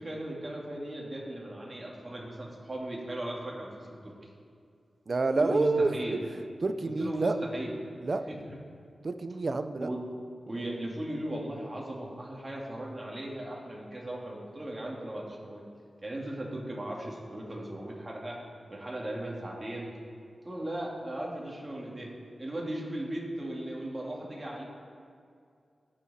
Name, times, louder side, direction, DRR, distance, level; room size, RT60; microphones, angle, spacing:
voice 1, 0.0-4.1 5.4-6.2 7.0-7.7 8.3-8.6 9.8-10.0 10.4-15.7 16.0-18.4 18.7-19.9 20.4-22.1 22.4-24.6, right 1 dB, 30° right, -3 dB, 2.2 m, -37 dB
voice 2, 5.1-5.9 6.6-7.3 8.0-8.2 9.0-9.9, right 3 dB, 50° right, 9 dB, 0.6 m, -27 dB
16.5 x 5.8 x 4.2 m, 2.4 s
wide cardioid pair, 80°, 0 cm